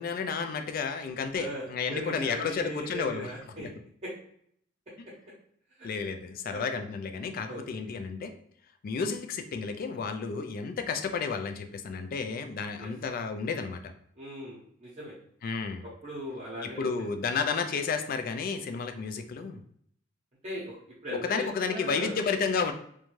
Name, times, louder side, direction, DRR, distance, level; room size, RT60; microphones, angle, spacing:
voice 1, 0.0-3.3 3.6-3.7 5.0-5.1 5.8-8.3 8.8-13.9 15.4-15.8 16.6-19.6 21.1-22.7, left 5 dB, 45° left, 7 dB, 0.3 m, -32 dB
voice 2, 1.4-3.7 4.0-4.1 5.8-5.9 6.5-6.7 7.5-7.9 12.8-12.9 14.2-15.1 16.0-17.1 20.4-20.8 21.0-22.2, equal, 35° right, -6 dB, 0.7 m, -39 dB
2.5 x 2.2 x 3.1 m, 0.67 s
head